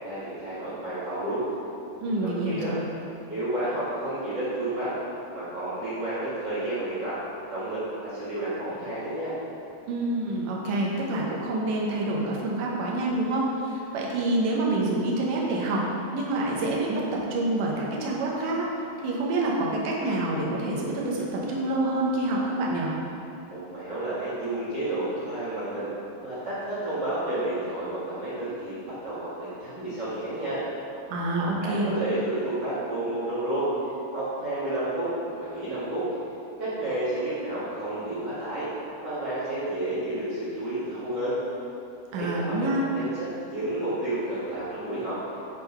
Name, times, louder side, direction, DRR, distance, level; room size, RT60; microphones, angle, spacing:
voice 1, 0.0-1.4 2.2-2.7 3.3-4.9 5.3-7.2 7.5-9.3 23.5-25.9 26.2-30.6 31.6-33.7 34.1-36.0 36.6-38.7 39.0-41.4 42.2-45.2, right 1 dB, 50° right, -12 dB, 1.2 m, -31 dB
voice 2, 2.0-2.8 9.9-15.9 16.1-18.7 19.0-22.9 31.1-31.9 42.1-42.8, right 2 dB, 70° right, -3 dB, 2.1 m, -27 dB
10.5 x 3.8 x 4.5 m, 2.7 s
omnidirectional pair, 4.7 m